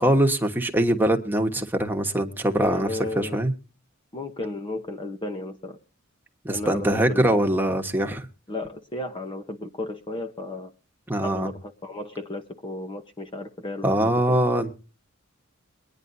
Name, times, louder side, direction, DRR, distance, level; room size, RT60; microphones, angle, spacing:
voice 1, 0.0-3.5 6.4-8.3 11.1-11.5 13.8-14.7, right 1 dB, 10° right, 3 dB, 1.3 m, -23 dB
voice 2, 2.6-3.4 4.1-5.8 6.5-7.5 8.5-10.7 11.2-14.4, left 2 dB, 25° left, 6 dB, 0.9 m, -34 dB
23.0 x 9.9 x 2.7 m, 0.35 s
head